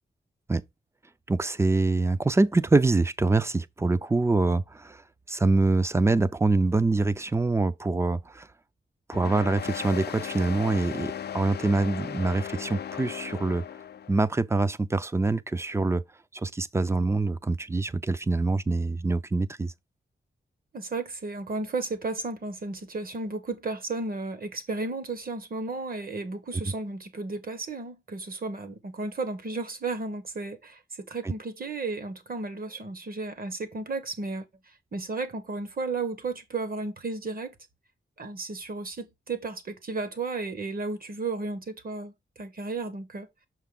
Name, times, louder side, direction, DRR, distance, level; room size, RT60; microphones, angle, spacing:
voice 1, 1.3-5.0 5.3-8.5 9.1-13.6 14.1-16.0 16.3-19.7, right 3 dB, 15° right, 0.4 m, -25 dB
sound 1, 9.1-14.2, left 9 dB, 55° left, 0.5 m, -37 dB
voice 2, 20.7-34.4 34.9-37.5 38.2-43.3, right 3 dB, 45° right, 1.2 m, -33 dB
6.7 x 4.6 x 3.7 m
wide cardioid pair, 145°, 21 cm